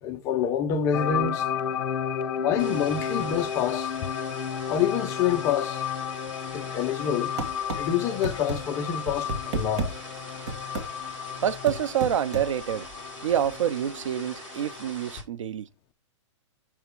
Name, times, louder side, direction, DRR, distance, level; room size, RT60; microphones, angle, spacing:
voice 1, 0.0-1.5 2.3-3.9 4.7-5.8 6.5-7.3 7.7-9.9, left 8 dB, 20° left, 0.5 m, -27 dB
sound 1, 0.9-14.9, left 8 dB, 50° left, 0.9 m, -33 dB
sound 2, 2.6-15.2, equal, 10° right, 2.5 m, -43 dB
sound 3, 7.4-7.8 8.2-8.6 9.1-9.9 10.5-10.9 11.7-12.5, right 2 dB, 40° right, 1.8 m, -30 dB
voice 2, 11.4-12.9 13.2-15.7, right 10 dB, 90° right, 0.8 m, -27 dB
7.3 x 3.5 x 4.6 m
hypercardioid pair, 165°, 16 cm